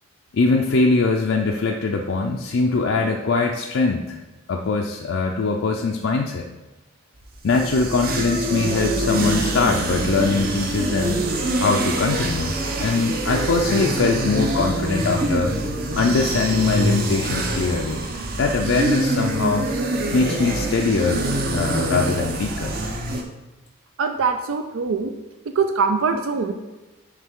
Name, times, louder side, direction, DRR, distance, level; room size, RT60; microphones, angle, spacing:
voice 1, 0.3-4.2 4.5-6.5 7.4-11.2 11.6-12.5 12.8-15.5 15.9-18.0 18.4-19.7 20.1-21.2 21.5-22.7, left 3 dB, 80° left, 0 dB, 0.5 m, -22 dB
sound 1, 7.3-23.2, right 1 dB, 45° right, 0.7 m, -25 dB
voice 2, 24.0-25.1 25.6-26.5, right 5 dB, 80° right, 6 dB, 0.5 m, -22 dB
9.5 x 3.3 x 3.6 m, 1.1 s
head